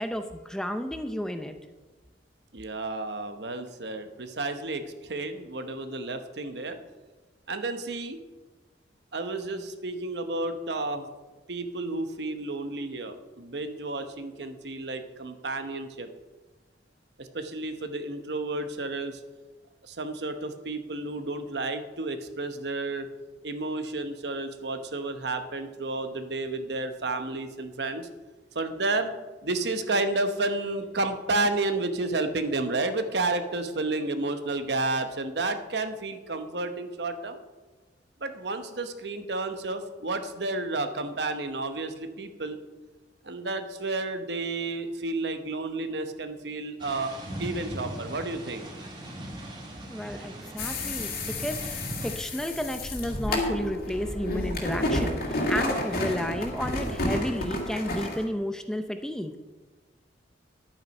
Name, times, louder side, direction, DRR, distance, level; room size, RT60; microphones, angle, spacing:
voice 1, 0.0-1.5 49.9-59.4, equal, 5° left, 7 dB, 0.5 m, -32 dB
voice 2, 2.5-6.8 7.5-8.2 9.1-11.1 11.5-16.1 17.2-19.2 19.8-23.1 23.4-28.1 28.5-29.1 29.4-37.4 38.2-42.6 43.2-47.1 47.4-48.7, right 2 dB, 65° right, 8 dB, 0.9 m, -31 dB
sound 1, 46.8-52.1, right 1 dB, 25° right, 1.9 m, -39 dB
sound 2, 50.6-58.2, left 1 dB, 55° left, 2.2 m, -30 dB
10.5 x 8.8 x 5.3 m, 1.2 s
head